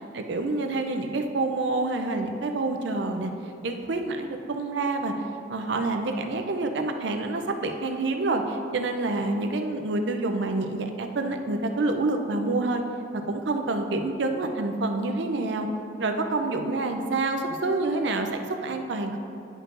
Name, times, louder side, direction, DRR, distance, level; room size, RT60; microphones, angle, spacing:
voice 1, 0.1-3.3 3.6-5.1 5.5-12.8 13.1-15.7 16.0-19.2, right 2 dB, 65° right, 5 dB, 0.5 m, -27 dB
10.5 x 4.5 x 2.6 m, 2.6 s
head